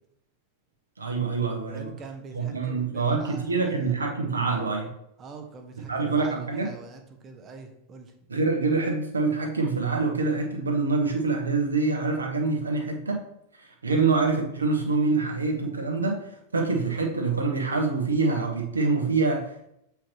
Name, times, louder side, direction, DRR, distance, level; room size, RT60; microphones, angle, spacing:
voice 1, 1.0-1.9 2.3-4.9 5.9-6.7 8.3-13.2 13.6-19.7, right 4 dB, 75° right, 2 dB, 1.2 m, -25 dB
voice 2, 1.7-3.9 5.2-8.1, right 4 dB, 30° right, 5 dB, 0.9 m, -44 dB
7.5 x 4.7 x 3.0 m, 0.76 s
figure-of-eight pair, 90°, 0 cm